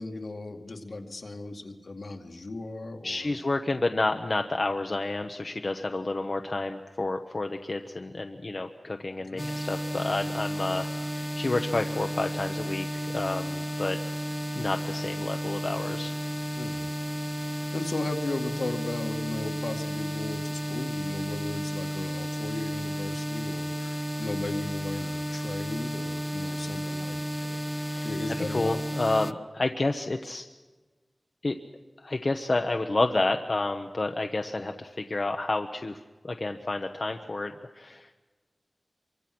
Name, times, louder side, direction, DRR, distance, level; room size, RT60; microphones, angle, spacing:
voice 1, 0.0-3.3 9.3-9.5 16.5-16.9 17.5-27.6 28.0-28.8, left 2 dB, 75° left, 3 dB, 2.3 m, -36 dB
voice 2, 3.0-14.0 14.5-16.1 27.8-28.1 28.4-30.4 31.4-31.6 32.0-36.0 36.2-38.1, left 2 dB, 55° left, 5 dB, 1.0 m, -30 dB
sound 1, 9.4-29.3, equal, ahead, 0.7 m, -33 dB
26.0 x 24.5 x 6.2 m, 1.3 s
wide cardioid pair, 60°, 0 cm